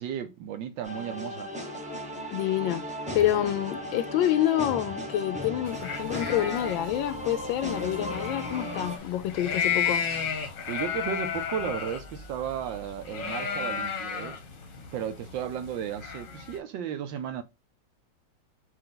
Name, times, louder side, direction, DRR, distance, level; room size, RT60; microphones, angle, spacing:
voice 1, 0.0-1.5 10.7-14.4 14.9-17.4, right 9 dB, 75° right, 1.2 m, -34 dB
sound 1, 0.8-9.0, equal, 10° right, 0.3 m, -36 dB
voice 2, 2.3-2.8 3.1-10.0, left 12 dB, 75° left, 1.2 m, -27 dB
sound 2, 5.7-16.6, left 7 dB, 50° left, 1.0 m, -34 dB
4.5 x 2.6 x 3.8 m
omnidirectional pair, 2.3 m